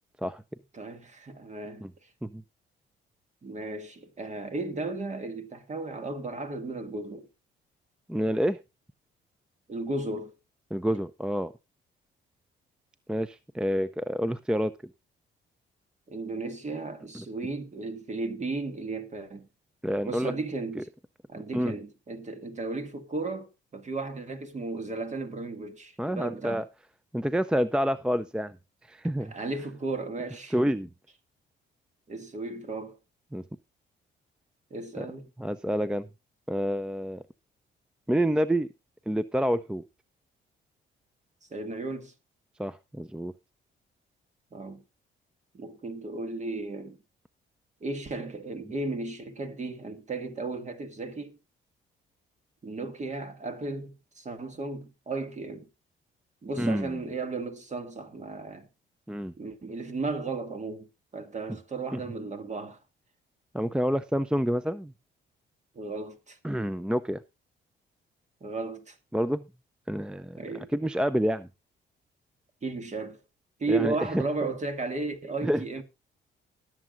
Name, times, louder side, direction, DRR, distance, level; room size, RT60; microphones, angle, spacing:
voice 1, 0.7-1.9 3.4-7.3 9.7-10.3 16.1-19.5 20.0-20.9 21.3-26.6 29.3-30.5 32.1-33.0 34.7-35.3 41.5-42.1 44.5-44.8 45.5-47.0 47.8-51.4 52.6-55.7 56.4-58.7 59.4-60.9 61.1-62.8 65.8-66.4 68.4-69.0 70.4-70.7 72.6-73.2 73.6-75.8, right 3 dB, 35° right, 2.1 m, -35 dB
voice 2, 8.1-8.6 10.7-11.5 13.1-14.7 17.1-17.2 19.8-20.3 20.8-20.9 21.5-21.7 26.0-26.7 27.1-28.6 28.9-29.3 30.5-30.9 33.3-33.4 35.0-35.1 35.4-36.1 36.5-37.2 38.1-38.7 39.1-39.8 42.6-43.3 56.6-57.0 59.1-59.3 61.9-62.0 63.5-64.9 66.4-67.2 69.1-69.4 69.9-70.4 70.7-71.5 73.7-74.0 75.4-75.6, equal, 5° right, 0.5 m, -28 dB
20.0 x 7.4 x 2.5 m
cardioid pair, 90°, 20 cm